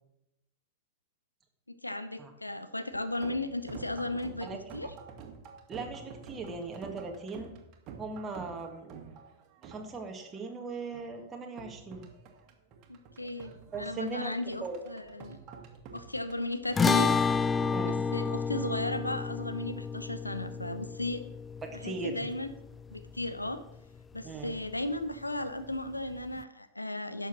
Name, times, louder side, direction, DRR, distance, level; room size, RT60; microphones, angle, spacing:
voice 1, 1.7-4.9 12.9-15.4 15.9-17.2 17.8-21.2 21.7-22.5 22.9-23.6 24.1-27.3, left 2 dB, 85° left, 11 dB, 0.8 m, -35 dB
sound 1, 2.9-18.6, right 6 dB, 40° right, 2.0 m, -49 dB
voice 2, 5.7-7.5 8.0-8.9 9.6-12.1 13.7-14.8 17.7-18.0 21.6-22.3 24.2-24.5, right 3 dB, 20° right, 2 dB, 1.8 m, -39 dB
sound 2, 16.8-23.3, left 5 dB, 15° left, 0.4 m, -30 dB
11.0 x 6.6 x 6.3 m, 0.84 s
figure-of-eight pair, 90°, 0 cm